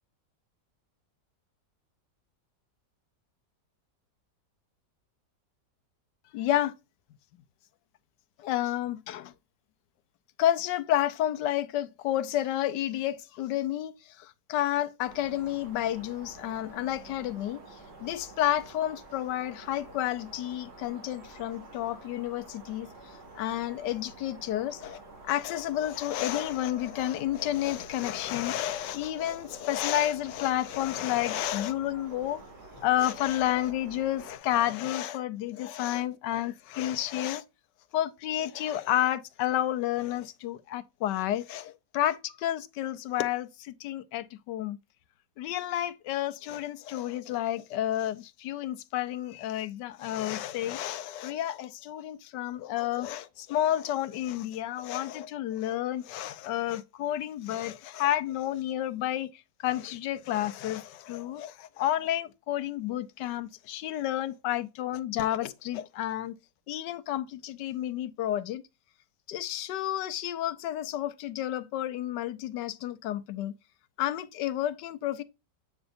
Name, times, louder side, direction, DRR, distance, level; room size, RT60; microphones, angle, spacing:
voice 1, 6.3-6.7 8.4-9.3 10.4-17.6 18.0-22.9 23.4-32.4 32.7-37.4 37.9-44.8 45.4-66.3 66.7-68.6 69.3-73.5 74.0-75.2, left 12 dB, 80° left, 1.3 m, -30 dB
sound 1, 15.0-34.4, right 2 dB, 70° right, 2.7 m, -49 dB
8.1 x 6.0 x 2.5 m
omnidirectional pair, 1.8 m